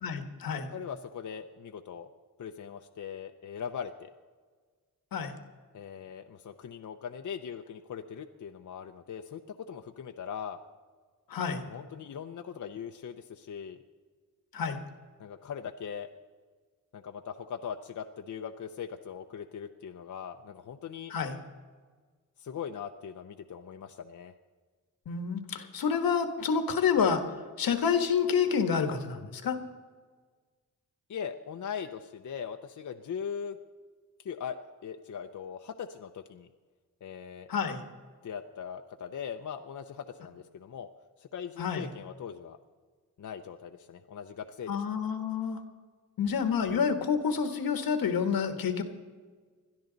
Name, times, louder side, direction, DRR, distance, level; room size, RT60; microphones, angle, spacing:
voice 1, 0.0-0.7 5.1-5.3 11.3-11.6 14.5-14.8 21.1-21.3 25.1-27.2 27.6-29.6 37.5-37.8 41.6-41.9 44.7-45.6 46.2-48.8, left 6 dB, 85° left, 7 dB, 1.5 m, -28 dB
voice 2, 0.7-2.1 2.4-4.1 5.7-10.6 11.7-13.8 15.2-16.1 16.9-21.1 22.4-24.3 31.1-33.6 34.2-34.6 34.8-36.5 37.0-37.5 38.2-40.9 41.2-42.6 43.2-44.8, left 7 dB, 55° left, 6 dB, 0.7 m, -40 dB
21.0 x 12.5 x 4.0 m, 1.5 s
cardioid pair, 85°, 35 cm